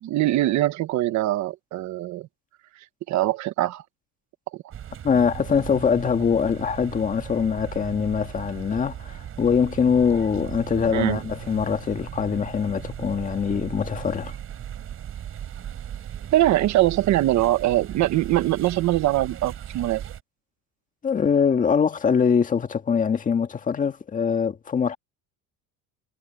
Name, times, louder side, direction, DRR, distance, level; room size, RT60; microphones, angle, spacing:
voice 1, 0.0-2.3 3.1-3.8 4.5-4.7 10.9-11.2 16.3-20.0, right 15 dB, 55° right, 1.3 m, -22 dB
sound 1, 4.7-20.2, right 10 dB, 40° right, 4.9 m, -37 dB
voice 2, 5.0-14.3 21.0-25.0, left 6 dB, 25° left, 1.7 m, -23 dB
cardioid pair, 155°, 35 cm